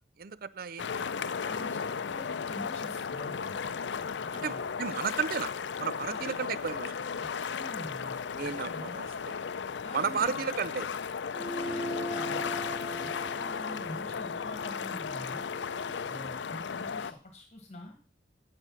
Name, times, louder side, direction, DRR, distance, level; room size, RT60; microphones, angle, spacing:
voice 1, 0.2-1.3 4.4-5.5 5.8-7.0 8.3-9.4 9.9-10.9, right 6 dB, 50° right, 0.5 m, -33 dB
sound 1, 0.8-17.1, left 6 dB, 75° left, 0.5 m, -35 dB
voice 2, 1.4-3.6 4.2-4.6 6.1-6.2 7.2-9.0 9.8-10.4 11.4-12.6 13.0-15.5 16.0-17.9, left 1 dB, 40° left, 1.5 m, -45 dB
sound 2, 11.3-16.1, equal, ahead, 0.7 m, -40 dB
9.8 x 6.7 x 6.2 m
head